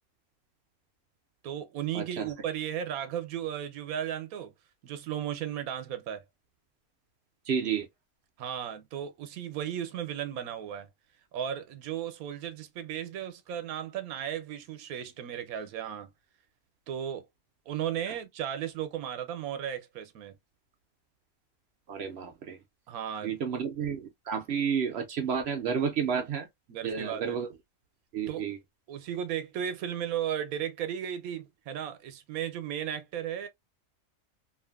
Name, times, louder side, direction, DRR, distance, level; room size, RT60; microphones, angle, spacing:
voice 1, 1.4-4.5 4.8-6.2 8.4-10.9 11.3-16.1 16.9-17.3 17.7-20.4 22.9-23.6 26.7-27.4 28.3-28.5 28.9-33.5, right 9 dB, 85° right, 1.1 m, -35 dB
voice 2, 1.9-2.3 7.5-7.9 21.9-22.6 23.2-26.5 26.8-27.5 28.1-28.6, right 7 dB, 65° right, 0.6 m, -31 dB
2.7 x 2.5 x 2.2 m
omnidirectional pair, 1.5 m